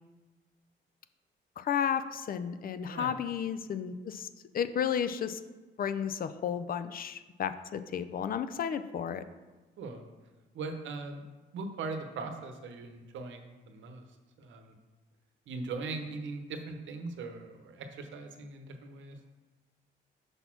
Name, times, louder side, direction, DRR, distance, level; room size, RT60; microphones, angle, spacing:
voice 1, 1.6-4.3 4.5-5.4 5.8-9.2, left 8 dB, 45° left, 11 dB, 0.4 m, -33 dB
voice 2, 10.5-11.2 11.5-14.0 14.4-14.7 15.5-19.2, right 3 dB, 70° right, 6 dB, 0.9 m, -40 dB
5.2 x 4.1 x 5.9 m, 1.2 s
cardioid pair, 90°, 20 cm